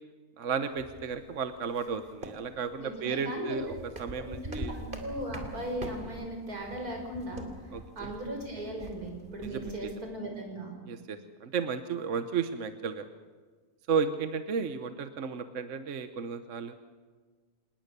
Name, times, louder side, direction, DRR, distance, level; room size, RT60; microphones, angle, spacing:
voice 1, 0.4-4.7 7.7-8.1 9.4-9.9 10.9-13.0 13.9-16.7, right 6 dB, 60° right, 9 dB, 1.2 m, -33 dB
sound 1, 0.7-9.9, right 1 dB, 35° right, 2.9 m, -45 dB
voice 2, 2.8-3.6 4.3-7.5 8.0-10.7, right 1 dB, 85° right, 2 dB, 6.0 m, -37 dB
27.0 x 20.0 x 6.7 m, 1.5 s
omnidirectional pair, 1.6 m